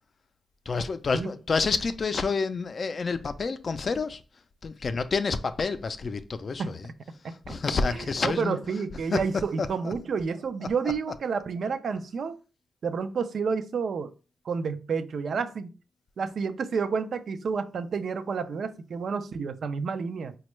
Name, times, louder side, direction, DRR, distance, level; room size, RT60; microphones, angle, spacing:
voice 1, 0.7-4.2 4.6-6.9 7.2-8.6 9.1-9.2 9.6-9.9, left 4 dB, 50° left, 0.4 m, -29 dB
voice 2, 7.2-7.5 8.2-12.4 12.8-14.1 14.5-15.7 16.2-20.3, right 5 dB, 70° right, 0.4 m, -30 dB
4.2 x 2.2 x 3.0 m
cardioid pair, 75°, 0 cm